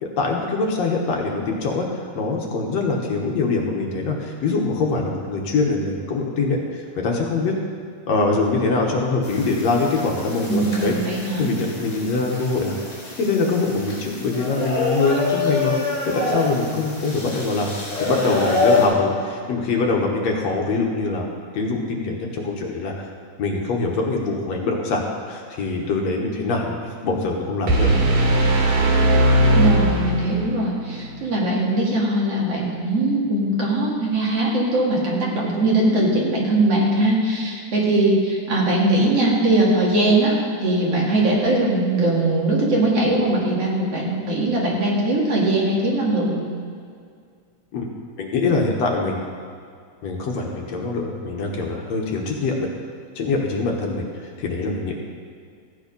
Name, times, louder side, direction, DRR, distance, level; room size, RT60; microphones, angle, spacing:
voice 1, 0.0-1.9 2.2-7.5 8.1-12.7 13.2-15.8 16.1-17.7 18.0-21.3 21.5-23.1 23.4-26.8 27.0-28.0 47.7-47.9 48.2-49.2 50.0-52.7 53.2-54.9, left 3 dB, 65° left, 0 dB, 2.3 m, -23 dB
sound 1, 9.2-18.9, left 3 dB, 25° left, 3.9 m, -26 dB
voice 2, 10.5-11.5 29.5-40.3 40.6-46.4, right 2 dB, 50° right, -3 dB, 3.1 m, -20 dB
sound 2, 27.7-30.7, right 1 dB, 90° right, 3.4 m, -18 dB
14.5 x 9.3 x 5.3 m, 2.2 s
omnidirectional pair, 3.6 m